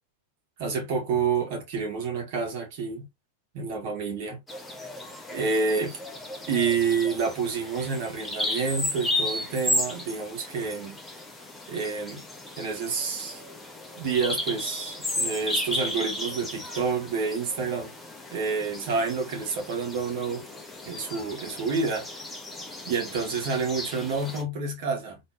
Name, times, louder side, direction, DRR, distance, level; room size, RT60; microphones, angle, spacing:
voice 1, 0.6-3.1 3.5-4.4 5.3-6.0 6.5-11.0 11.7-12.2 12.6-13.4 14.0-17.9 18.3-20.4 20.9-22.1 22.8-25.2, right 5 dB, 50° right, 1.9 m, -28 dB
Bird vocalization bird call bird song, 4.5-24.4, left 1 dB, 5° left, 1.3 m, -34 dB
4.2 x 3.4 x 2.8 m
figure-of-eight pair, 90°, 0 cm